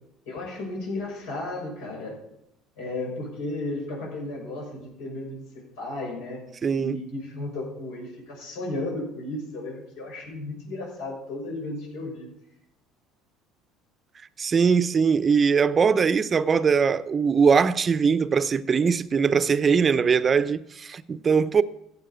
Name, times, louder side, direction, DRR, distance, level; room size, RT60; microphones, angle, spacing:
voice 1, 0.2-2.2 2.8-6.4 6.8-12.3, left 2 dB, 85° left, 6.4 m, -34 dB
voice 2, 6.6-7.0 14.4-21.6, right 6 dB, 30° right, 0.7 m, -21 dB
15.0 x 8.5 x 5.1 m
supercardioid pair, 95°, 0 cm